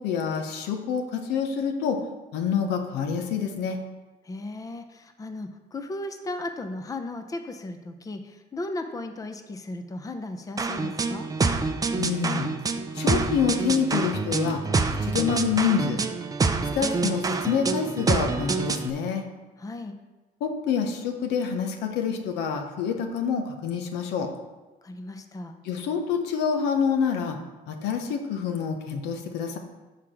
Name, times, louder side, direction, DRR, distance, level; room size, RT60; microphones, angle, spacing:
voice 1, 0.0-2.0 2.3-3.8 12.0-12.5 12.9-14.6 14.9-16.0 16.7-19.2 20.4-24.3 25.6-27.4 27.7-29.6, left 6 dB, 90° left, 4 dB, 1.1 m, -27 dB
voice 2, 4.2-11.3 19.6-20.0 24.8-25.5, left 2 dB, 20° left, 7 dB, 0.7 m, -36 dB
sound 1, 10.6-18.9, right 4 dB, 20° right, 0.5 m, -26 dB
6.8 x 4.8 x 6.0 m, 1.2 s
cardioid pair, 110°, 17 cm